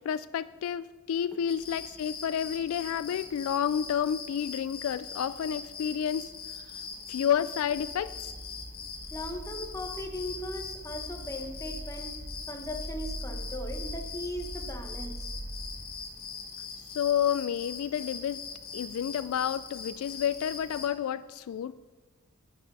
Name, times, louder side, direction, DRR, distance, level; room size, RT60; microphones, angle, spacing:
voice 1, 0.0-6.3 7.1-8.3 16.8-18.4 18.7-21.7, left 9 dB, 70° left, 16 dB, 0.3 m, -30 dB
sound 1, 1.5-20.9, left 5 dB, 45° left, 1.8 m, -42 dB
sound 2, 7.6-15.9, right 1 dB, 45° right, 1.3 m, -42 dB
voice 2, 9.1-12.1 12.5-15.3, left 1 dB, 15° left, 4 dB, 1.0 m, -38 dB
9.7 x 9.2 x 5.4 m, 1.3 s
head